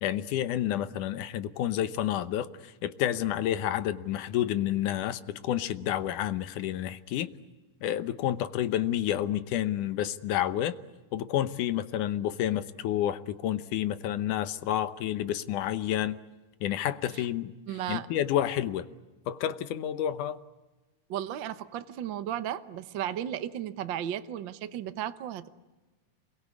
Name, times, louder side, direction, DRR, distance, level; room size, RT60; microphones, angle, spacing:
voice 1, 0.0-7.3 7.8-10.8 11.1-16.2 16.6-17.6 17.9-18.9 19.3-20.4, left 11 dB, 80° left, 13 dB, 2.5 m, -29 dB
voice 2, 17.7-18.1 21.1-25.5, right 10 dB, 75° right, 11 dB, 1.1 m, -34 dB
28.0 x 22.5 x 8.5 m, 1.1 s
omnidirectional pair, 3.6 m